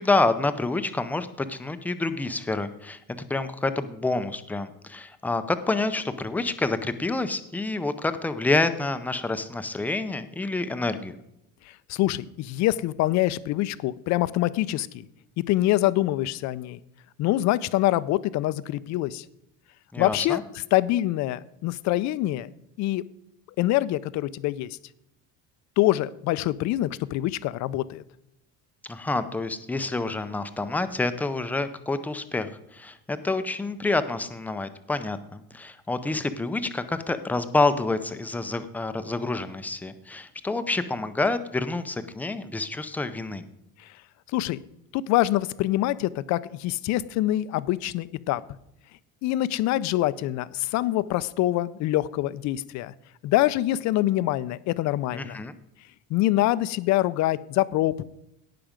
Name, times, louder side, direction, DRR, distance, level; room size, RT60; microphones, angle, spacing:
voice 1, 0.0-11.1 19.9-20.4 28.9-43.4 55.1-55.5, left 3 dB, 5° left, 11 dB, 0.5 m, -28 dB
voice 2, 11.7-15.1 15.4-16.8 17.2-19.2 20.0-22.5 22.8-23.0 23.6-24.8 25.8-28.0 44.3-44.6 44.9-48.4 49.2-52.9 53.2-55.4 56.1-58.0, left 15 dB, 55° left, 17 dB, 0.5 m, -25 dB
17.5 x 6.0 x 5.1 m, 0.82 s
cardioid pair, 160°, 34 cm